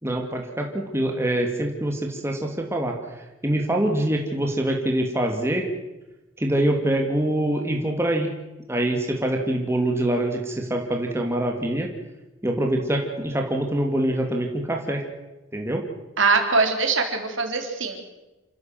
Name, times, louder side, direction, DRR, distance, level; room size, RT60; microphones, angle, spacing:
voice 1, 0.0-3.0 3.4-5.6 6.4-8.3 8.7-11.9 12.4-15.0 15.5-15.8, right 1 dB, 10° right, 1 dB, 2.5 m, -24 dB
voice 2, 16.2-18.0, right 4 dB, 70° right, 4 dB, 3.8 m, -22 dB
28.0 x 15.0 x 7.8 m, 1.1 s
head